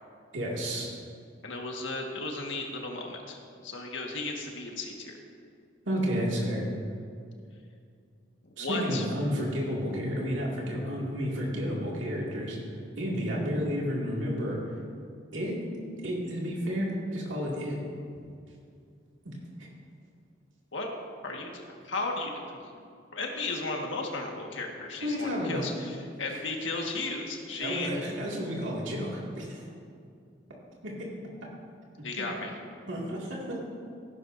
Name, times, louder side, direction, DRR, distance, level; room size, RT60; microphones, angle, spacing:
voice 1, 0.3-0.9 5.9-6.6 8.6-12.6 13.0-14.6 15.3-15.7 16.0-17.8 19.2-19.7 25.0-25.7 26.3-26.8 27.6-29.7 30.8-31.3 32.0-32.3 32.9-33.6, equal, 85° right, -4 dB, 2.2 m, -31 dB
voice 2, 1.4-5.2 8.6-9.0 20.7-20.9 21.2-22.6 23.1-27.9 32.0-32.5, left 3 dB, 80° left, 1 dB, 1.6 m, -35 dB
16.5 x 11.0 x 2.6 m, 2.3 s
head